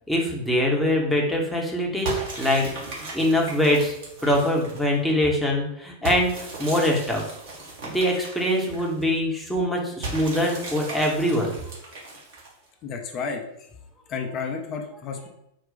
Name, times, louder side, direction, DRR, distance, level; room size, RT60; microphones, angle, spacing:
voice 1, 0.1-3.9 4.2-7.2 7.8-11.5, left 1 dB, ahead, -2 dB, 0.9 m, -23 dB
sound 1, 2.1-5.0 6.1-9.0 10.0-12.7, right 2 dB, 50° right, 1.4 m, -36 dB
voice 2, 12.8-13.7 14.1-15.3, left 5 dB, 35° left, 3 dB, 0.6 m, -32 dB
4.1 x 2.3 x 3.9 m, 0.79 s
figure-of-eight pair, 90°, 0 cm